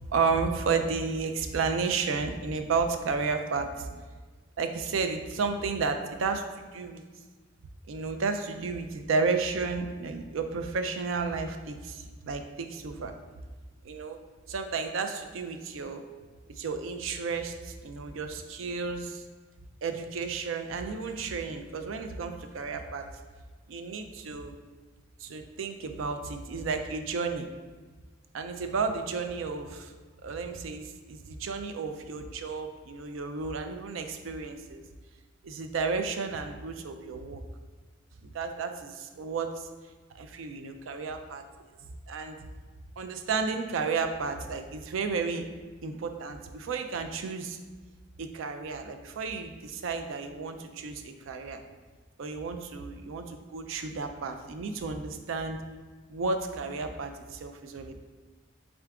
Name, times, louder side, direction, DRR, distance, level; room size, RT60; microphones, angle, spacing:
voice 1, 0.1-4.0 4.6-6.4 6.7-7.0 7.9-13.1 13.8-14.2 14.5-16.0 16.6-19.2 19.8-23.1 23.7-24.5 25.2-27.5 28.3-29.9 30.2-34.8 35.4-37.4 38.2-39.7 40.1-41.4 42.1-42.4 43.0-45.4 45.8-47.6 48.2-51.6 52.2-55.6 56.1-58.0, right 4 dB, 85° right, 7 dB, 0.4 m, -32 dB
3.7 x 3.4 x 3.6 m, 1.4 s
head